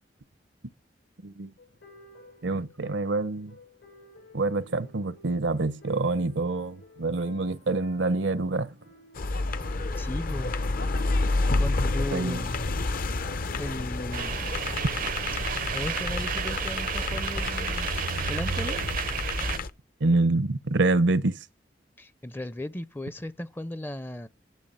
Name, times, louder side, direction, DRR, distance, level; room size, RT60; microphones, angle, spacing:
sound 1, 1.6-16.0, left 2 dB, 90° left, 6.9 m, -53 dB
voice 1, 2.4-3.6 4.3-8.7 12.1-12.5 20.0-21.4, right 2 dB, 85° right, 0.8 m, -26 dB
sound 2, 9.1-19.7, left 3 dB, 55° left, 0.7 m, -29 dB
voice 2, 10.0-10.5 11.5-12.6 13.6-14.7 15.7-17.9 18.3-18.8 22.0-24.3, left 1 dB, 10° left, 0.5 m, -36 dB
sound 3, 14.1-19.6, right 7 dB, 50° right, 0.5 m, -32 dB
11.5 x 7.4 x 5.5 m
head